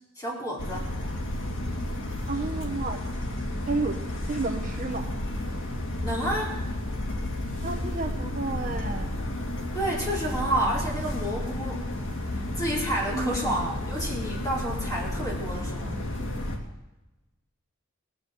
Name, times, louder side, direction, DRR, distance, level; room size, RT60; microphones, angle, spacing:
voice 1, 0.2-0.9 6.0-6.5 9.7-11.8 12.3-15.9, right 1 dB, 15° left, -4 dB, 4.6 m, -30 dB
sound 1, 0.6-16.6, left 1 dB, 65° left, 2.6 m, -32 dB
voice 2, 2.3-3.0 3.7-4.0 4.3-5.1 7.6-9.1 13.1-13.6, right 3 dB, 40° right, 4 dB, 1.0 m, -31 dB
18.5 x 7.3 x 8.1 m, 1.0 s
head